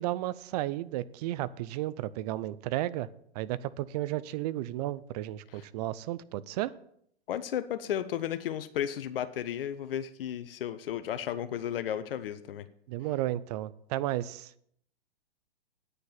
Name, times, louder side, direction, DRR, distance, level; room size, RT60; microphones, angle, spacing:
voice 1, 0.0-3.1 3.3-6.7 12.9-14.5, right 15 dB, 40° right, 0.6 m, -33 dB
voice 2, 7.3-12.7, left 10 dB, 65° left, 0.8 m, -34 dB
9.5 x 6.7 x 7.2 m
hypercardioid pair, 110°, 31 cm